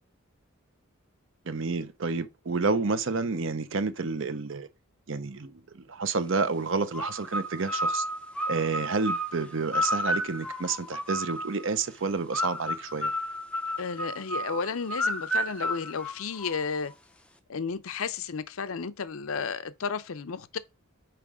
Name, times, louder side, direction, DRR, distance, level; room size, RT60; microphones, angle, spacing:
voice 1, 1.5-4.7 5.1-8.0 8.5-13.1, right 4 dB, 60° right, 0.6 m, -30 dB
sound 1, 6.9-11.7 12.3-16.8, equal, 5° left, 0.5 m, -31 dB
voice 2, 13.8-16.9 17.5-20.6, left 5 dB, 70° left, 0.6 m, -33 dB
5.9 x 4.6 x 4.9 m
head